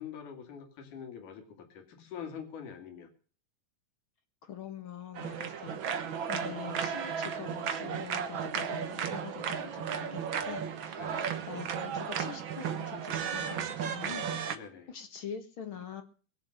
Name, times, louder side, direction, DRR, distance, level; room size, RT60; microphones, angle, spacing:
voice 1, 0.0-3.1 5.6-5.7 10.4-10.6 11.0-11.3 14.5-14.9, left 7 dB, 70° left, 6 dB, 3.9 m, -45 dB
voice 2, 4.4-5.8 6.3-11.1 11.5-14.6 14.9-16.0, left 7 dB, 45° left, 7 dB, 2.1 m, -44 dB
sound 1, 5.1-14.6, right 7 dB, 60° right, 1.3 m, -34 dB
21.5 x 7.4 x 6.6 m, 0.41 s
omnidirectional pair, 3.8 m